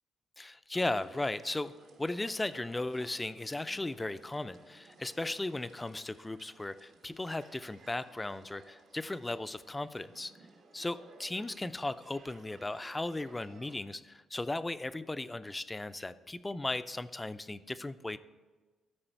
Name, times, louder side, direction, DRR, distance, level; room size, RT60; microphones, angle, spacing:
voice 1, 0.4-1.7 2.0-10.3 10.7-18.2, left 2 dB, 15° left, 14 dB, 0.4 m, -36 dB
sound 1, 0.7-13.8, right 3 dB, 80° right, 1.4 m, -58 dB
13.0 x 4.8 x 4.5 m, 1.3 s
cardioid pair, 90°, 0 cm